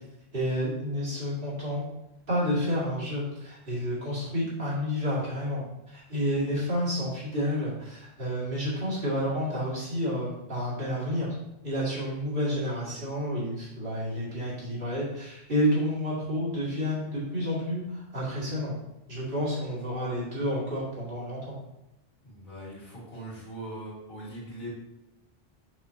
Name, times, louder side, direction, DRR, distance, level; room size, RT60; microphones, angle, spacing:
voice 1, 0.3-1.8 2.3-11.3 11.6-18.7 19.1-21.6, equal, 60° right, -7 dB, 2.4 m, -30 dB
voice 2, 22.2-24.7, right 1 dB, 50° left, -8 dB, 2.2 m, -40 dB
6.1 x 5.8 x 2.8 m, 0.89 s
omnidirectional pair, 1.1 m